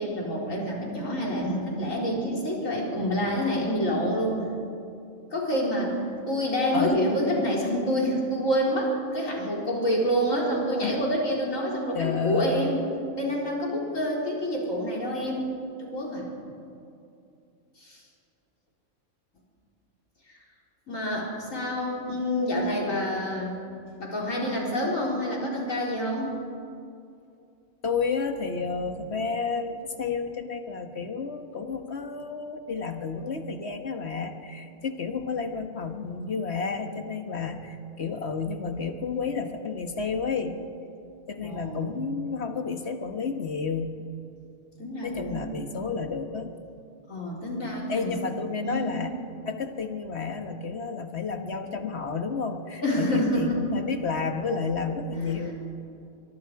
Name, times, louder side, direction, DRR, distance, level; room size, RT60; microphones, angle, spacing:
voice 1, 0.0-4.4 5.3-6.0 6.3-12.8 13.1-15.5 15.8-16.3 17.8-18.0 20.3-20.4 20.9-23.6 24.0-26.4 41.4-42.0 44.8-45.5 47.1-48.2 48.6-48.9 52.8-53.6 55.2-55.5, equal, 75° left, -3 dB, 4.5 m, -27 dB
voice 2, 11.9-12.5 27.8-40.5 41.3-44.0 45.0-46.5 47.9-55.5, left 5 dB, 55° left, 6 dB, 1.6 m, -31 dB
23.5 x 23.0 x 4.8 m, 2.6 s
omnidirectional pair, 1.4 m